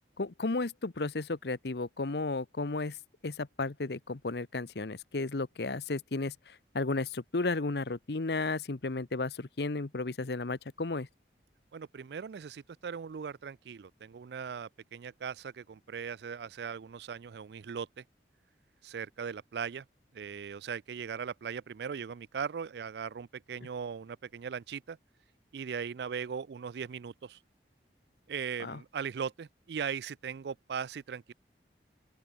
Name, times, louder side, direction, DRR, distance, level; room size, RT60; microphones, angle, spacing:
voice 1, 0.2-3.0 3.2-11.1 28.6-28.8, left 3 dB, 70° left, 0.9 m, -33 dB
voice 2, 11.7-18.0 18.8-19.8 20.1-25.0 25.5-27.4 28.3-31.3, right 6 dB, 70° right, 0.4 m, -39 dB
open air
head